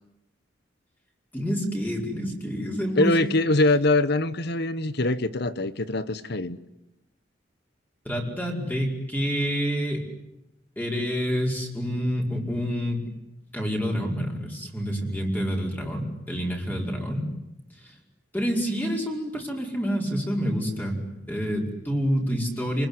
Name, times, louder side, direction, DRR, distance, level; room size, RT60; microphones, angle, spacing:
voice 1, 1.3-3.1 8.1-10.0 10.8-13.0 13.5-17.3 18.3-21.0 21.3-22.9, equal, 10° left, 0 dB, 5.2 m, -27 dB
voice 2, 3.0-6.6, left 2 dB, 65° left, 14 dB, 1.3 m, -23 dB
29.0 x 21.0 x 9.8 m, 0.89 s
head